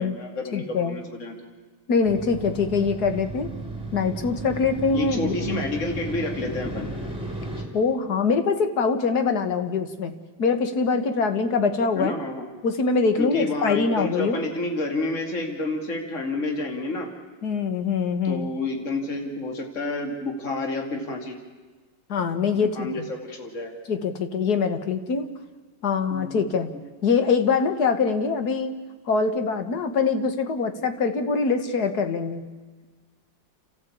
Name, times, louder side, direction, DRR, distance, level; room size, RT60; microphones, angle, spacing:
voice 1, 0.0-1.5 4.9-6.9 11.9-12.5 13.2-17.1 18.2-21.4 22.6-23.7 26.1-26.4, left 2 dB, 40° left, 3 dB, 2.7 m, -29 dB
voice 2, 0.5-1.0 1.9-3.5 3.9-5.3 7.7-10.1 10.4-12.1 12.6-14.4 17.4-18.5 22.1-22.9 23.9-25.3 25.8-26.7 27.0-28.7 29.1-32.4, left 5 dB, 60° left, 8 dB, 2.0 m, -23 dB
Motorcycle, 2.0-7.6, right 2 dB, 5° right, 3.8 m, -34 dB
30.0 x 14.0 x 8.6 m, 1.4 s
omnidirectional pair, 2.0 m